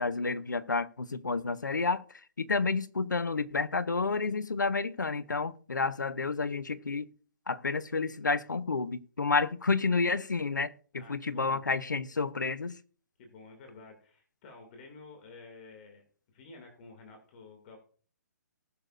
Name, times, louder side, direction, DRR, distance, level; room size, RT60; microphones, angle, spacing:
voice 1, 0.0-2.0 2.4-7.1 7.5-12.8, left 4 dB, 85° left, 0.8 m, -30 dB
voice 2, 10.9-11.6 13.2-16.0 16.3-17.8, left 3 dB, 40° left, 2.4 m, -51 dB
19.0 x 6.8 x 2.5 m
figure-of-eight pair, 130°, 10 cm